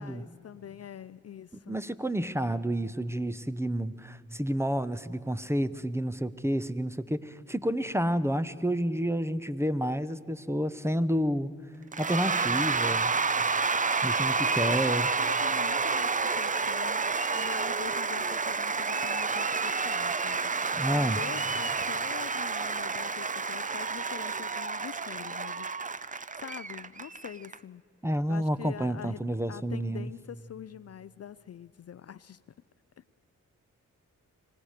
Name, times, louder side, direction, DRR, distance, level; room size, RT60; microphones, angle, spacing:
voice 1, 0.0-1.8 14.1-17.1 17.3-20.4 20.9-25.7 26.0-27.8 28.3-29.2 29.5-32.4 33.0-33.2, left 9 dB, 50° left, 17 dB, 0.5 m, -44 dB
voice 2, 1.6-11.5 12.0-13.1 14.0-15.1 20.8-21.2 28.0-30.1, equal, 10° right, 14 dB, 0.9 m, -30 dB
Cheering / Applause / Crowd, 11.9-27.5, right 4 dB, 25° right, 0.6 m, -29 dB
25.0 x 17.5 x 6.7 m, 2.4 s
cardioid pair, 50°, 33 cm